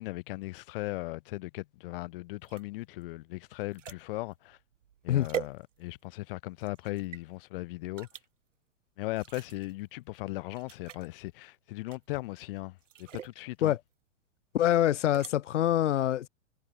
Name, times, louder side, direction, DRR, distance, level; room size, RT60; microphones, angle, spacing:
voice 1, 0.0-4.6 5.0-8.1 9.0-13.7, left 20 dB, 50° left, 1.3 m, -38 dB
sound 1, 2.4-6.2 6.6-7.2 8.0-8.3 9.1-9.7 10.2-10.3 10.5-11.1 11.9-12.3 12.8-13.4 14.9-15.3, right 9 dB, 90° right, 1.8 m, -43 dB
voice 2, 14.5-16.3, left 12 dB, 75° left, 1.4 m, -25 dB
hypercardioid pair, 140°, 37 cm